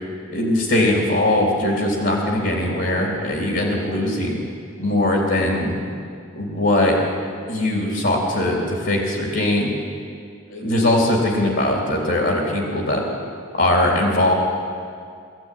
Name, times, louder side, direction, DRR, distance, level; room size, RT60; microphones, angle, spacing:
voice 1, 0.3-4.4 4.8-5.8 6.4-7.0 7.5-9.7 10.5-13.0 13.5-14.3, left 1 dB, 60° left, -1 dB, 3.7 m, -20 dB
22.0 x 14.5 x 9.5 m, 2.3 s
head